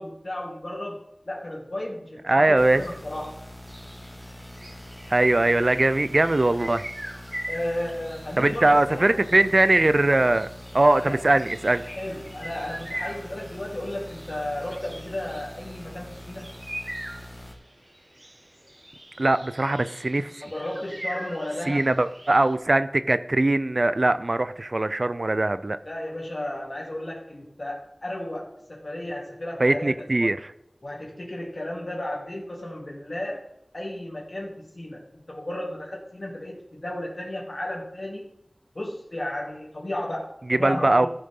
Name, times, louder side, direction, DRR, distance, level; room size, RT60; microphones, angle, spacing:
voice 1, 0.0-3.3 7.5-9.1 9.4-9.5 11.0-11.2 11.9-16.6 20.4-21.9 25.8-30.3 30.8-38.3 38.7-41.1, left 1 dB, 60° left, -2 dB, 3.1 m, -34 dB
voice 2, 2.3-2.8 5.1-6.8 8.4-10.5 10.7-11.8 19.2-20.3 21.7-25.8 29.6-30.4 40.5-41.1, right 2 dB, 65° right, 13 dB, 0.5 m, -21 dB
sound 1, 2.5-17.5, left 1 dB, 15° left, 2.0 m, -43 dB
sound 2, 3.6-22.5, right 1 dB, 35° right, 1.7 m, -42 dB
14.5 x 6.6 x 3.8 m, 0.78 s
wide cardioid pair, 45°, 0 cm